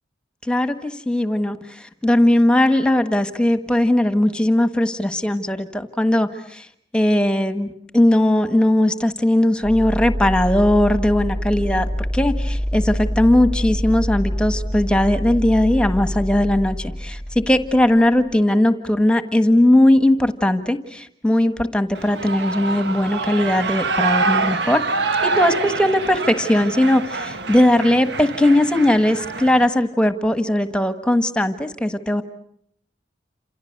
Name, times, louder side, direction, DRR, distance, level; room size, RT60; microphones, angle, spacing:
voice 1, 0.4-6.7 6.9-7.7 7.9-11.9 12.1-24.8 25.2-32.2, left 1 dB, 5° left, 9 dB, 1.5 m, -18 dB
sound 1, 9.6-18.3, equal, 15° right, 2.1 m, -26 dB
Shout / Cheering, 21.9-29.7, right 3 dB, 75° right, 1.3 m, -25 dB
29.0 x 27.5 x 6.7 m, 0.68 s
head